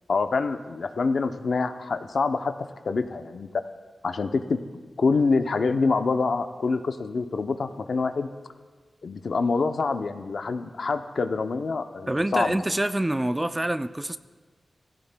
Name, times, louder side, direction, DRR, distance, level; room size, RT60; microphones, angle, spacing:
voice 1, 0.1-3.6 4.0-4.6 5.0-8.3 9.0-12.6, left 4 dB, 55° left, 8 dB, 0.6 m, -26 dB
voice 2, 12.1-14.2, right 1 dB, 15° right, 11 dB, 0.3 m, -26 dB
17.0 x 15.5 x 2.2 m, 1.4 s
wide cardioid pair, 170°, 0 cm